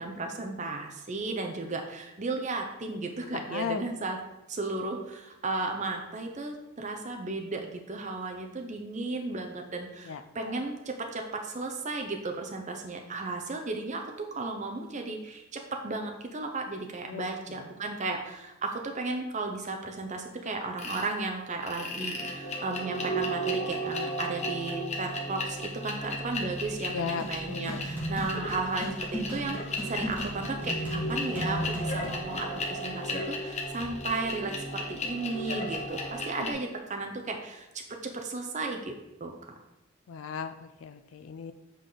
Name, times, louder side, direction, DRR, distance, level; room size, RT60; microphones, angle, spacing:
voice 1, 0.0-4.2 4.5-37.7 38.0-39.3, right 3 dB, 35° right, 3 dB, 0.7 m, -34 dB
voice 2, 3.3-3.9 10.1-10.5 17.1-17.6 26.9-27.9 40.1-41.5, left 6 dB, 75° left, 10 dB, 0.4 m, -36 dB
sound 1, 20.8-21.1 21.6-36.5, equal, 35° left, 1.1 m, -35 dB
sound 2, 27.2-32.2, equal, 10° right, 1.9 m, -35 dB
7.9 x 4.8 x 3.9 m, 0.98 s
head